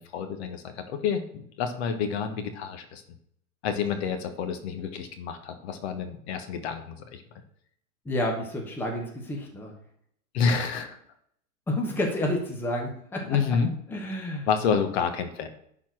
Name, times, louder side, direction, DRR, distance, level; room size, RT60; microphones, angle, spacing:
voice 1, 0.0-3.0 3.6-7.2 10.3-11.0 13.2-13.7 14.5-15.5, left 6 dB, 45° left, 7 dB, 1.4 m, -29 dB
voice 2, 8.0-9.7 11.7-13.3 13.9-14.5, left 1 dB, 5° left, 0 dB, 1.1 m, -30 dB
11.0 x 4.4 x 6.1 m, 0.69 s
hypercardioid pair, 150°, 44 cm